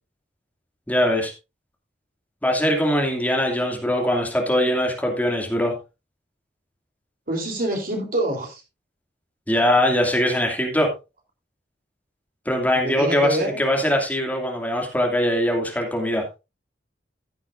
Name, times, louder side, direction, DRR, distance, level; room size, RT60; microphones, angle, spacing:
voice 1, 0.9-1.3 2.4-5.7 9.5-10.9 12.5-16.2, left 1 dB, 10° left, 2 dB, 2.5 m, -21 dB
voice 2, 7.3-8.6 12.7-13.6, right 1 dB, 55° right, 2 dB, 3.7 m, -26 dB
15.0 x 8.7 x 2.6 m, 0.26 s
head